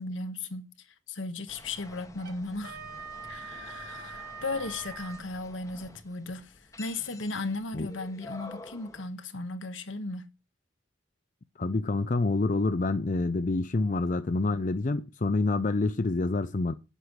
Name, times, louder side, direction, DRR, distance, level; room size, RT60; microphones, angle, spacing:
voice 1, 0.0-2.8 3.3-10.3, left 2 dB, 75° left, 1.2 m, -36 dB
sound 1, 1.5-9.1, left 2 dB, 15° left, 1.2 m, -49 dB
Wind instrument woodwind instrument, 2.2-5.3, right 5 dB, 50° right, 2.0 m, -43 dB
voice 2, 11.6-16.7, left 3 dB, 40° left, 0.5 m, -27 dB
10.0 x 8.1 x 6.1 m
head